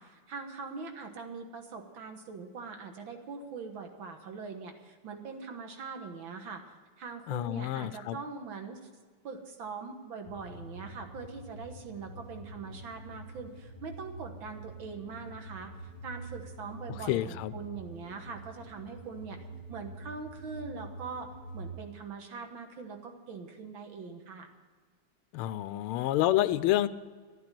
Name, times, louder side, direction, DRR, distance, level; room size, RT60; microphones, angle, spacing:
voice 1, 0.0-6.6 7.0-8.8 9.2-15.7 16.0-19.4 19.7-24.5, right 5 dB, 65° right, 5 dB, 2.1 m, -42 dB
voice 2, 7.3-8.2 17.1-17.5 25.3-26.9, left 14 dB, 80° left, 13 dB, 1.5 m, -28 dB
sound 1, 10.2-21.8, right 2 dB, 25° left, 1.2 m, -46 dB
11.5 x 11.5 x 7.5 m, 1.5 s
omnidirectional pair, 2.4 m